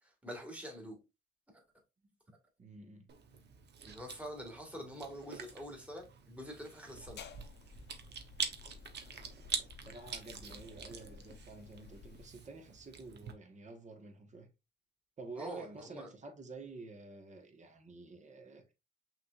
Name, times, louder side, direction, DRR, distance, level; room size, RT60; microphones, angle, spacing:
voice 1, 0.0-1.0 1.5-1.6 3.8-7.2 15.4-16.1, equal, 5° right, 1.8 m, -46 dB
voice 2, 2.6-3.1 9.8-14.5 15.2-18.7, right 3 dB, 35° right, 1.3 m, -50 dB
Chewing mastication, 3.1-13.3, right 7 dB, 60° right, 0.9 m, -45 dB
sound 1, 7.1-12.3, left 6 dB, 60° left, 0.7 m, -54 dB
5.8 x 3.4 x 2.4 m
cardioid pair, 90°, 20 cm